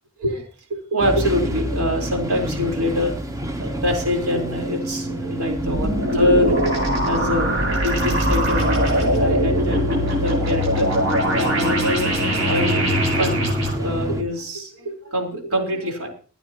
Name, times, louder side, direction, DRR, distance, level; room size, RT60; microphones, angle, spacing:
voice 1, 0.9-3.1 3.6-6.6 7.0-7.5 7.8-10.9 11.3-16.1, left 1 dB, 85° right, 1 dB, 4.2 m, -25 dB
sound 1, 1.0-14.2, right 1 dB, 15° right, 0.8 m, -27 dB
sound 2, 5.5-13.7, equal, 65° right, 6.9 m, -22 dB
24.5 x 9.3 x 3.0 m, 0.39 s
head